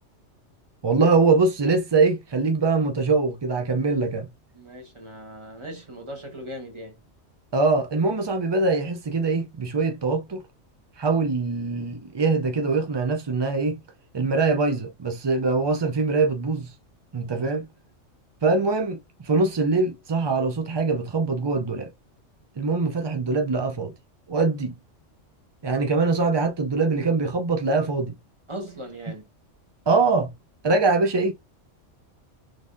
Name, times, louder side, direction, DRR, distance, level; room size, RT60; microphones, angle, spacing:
voice 1, 0.8-4.3 7.5-10.4 11.0-13.8 14.1-16.7 17.1-17.7 18.4-21.9 22.6-23.9 24.3-24.8 25.6-28.1 29.9-30.3 30.6-31.3, right 3 dB, 45° right, 0.3 m, -23 dB
voice 2, 4.5-7.0 28.5-29.3, equal, 25° right, 1.3 m, -38 dB
3.9 x 3.2 x 2.6 m
omnidirectional pair, 1.3 m